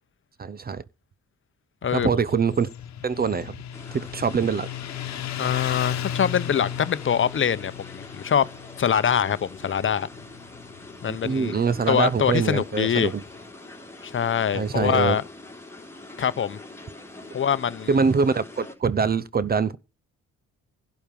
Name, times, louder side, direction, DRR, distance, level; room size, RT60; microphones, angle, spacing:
voice 1, 0.4-0.8 1.9-2.7 3.0-3.6 3.9-4.7 11.1-13.2 14.5-15.2 17.9-19.8, right 5 dB, 30° right, 0.7 m, -24 dB
Motorcycle, 2.3-13.4, left 10 dB, 65° left, 1.1 m, -36 dB
sound 1, 3.7-18.8, left 2 dB, 10° left, 3.4 m, -44 dB
voice 2, 5.4-8.4 8.8-10.1 11.0-11.5 11.9-13.1 14.0-15.2 16.2-16.6 17.3-17.9, left 8 dB, 40° left, 0.8 m, -24 dB
11.5 x 7.2 x 5.3 m
cardioid pair, 90°, 30 cm